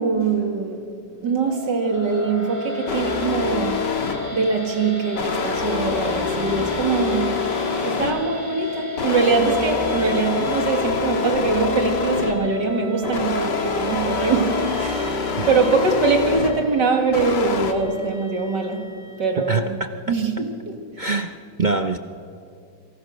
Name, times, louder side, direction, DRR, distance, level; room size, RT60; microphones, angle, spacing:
voice 1, 0.0-4.1 4.3-19.8 20.1-21.1, right 4 dB, 65° right, 2.9 m, -23 dB
sound 1, 1.4-19.6, left 3 dB, 90° right, 5.0 m, -33 dB
sound 2, 2.9-4.4 5.2-8.4 9.0-12.5 13.0-16.7 17.1-17.7, left 5 dB, 65° left, 2.3 m, -26 dB
voice 2, 19.5-19.9 21.0-22.0, right 3 dB, 45° right, 0.6 m, -24 dB
28.0 x 23.5 x 6.5 m
omnidirectional pair, 2.1 m